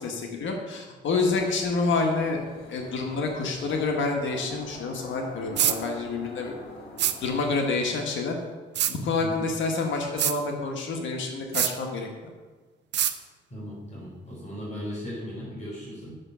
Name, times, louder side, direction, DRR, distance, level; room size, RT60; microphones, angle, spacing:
voice 1, 0.0-6.5 7.2-8.4 8.9-12.3, left 3 dB, 70° left, 2 dB, 1.6 m, -28 dB
sound 1, 1.3-7.8, left 3 dB, 55° left, 2.5 m, -44 dB
sound 2, 5.6-5.8 7.0-7.2 8.8-8.9 10.2-10.4 11.5-11.7 12.9-13.1, right 11 dB, 65° right, 0.7 m, -24 dB
voice 2, 13.5-16.1, equal, 35° left, -4 dB, 3.6 m, -37 dB
9.7 x 6.8 x 6.2 m, 1.4 s
cardioid pair, 90°, 20 cm